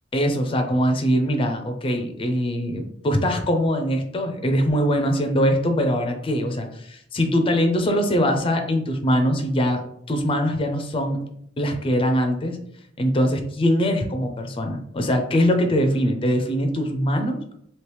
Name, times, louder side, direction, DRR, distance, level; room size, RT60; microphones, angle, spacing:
voice 1, 0.1-9.8 10.1-11.2 11.6-12.6 13.0-17.4, equal, 30° left, 5 dB, 0.4 m, -22 dB
3.0 x 2.8 x 3.2 m, 0.69 s
head